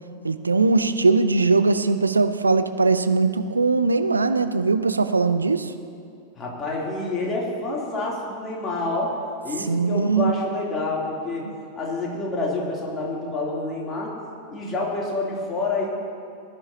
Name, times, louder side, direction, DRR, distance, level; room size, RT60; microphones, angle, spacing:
voice 1, 0.2-5.7 9.7-10.3, right 3 dB, 80° right, 10 dB, 0.5 m, -20 dB
voice 2, 6.4-9.1 9.4-11.4 11.8-14.1 14.5-16.0, left 2 dB, 25° left, -4 dB, 3.0 m, -28 dB
20.0 x 11.0 x 2.8 m, 2.6 s
figure-of-eight pair, 90°, 0 cm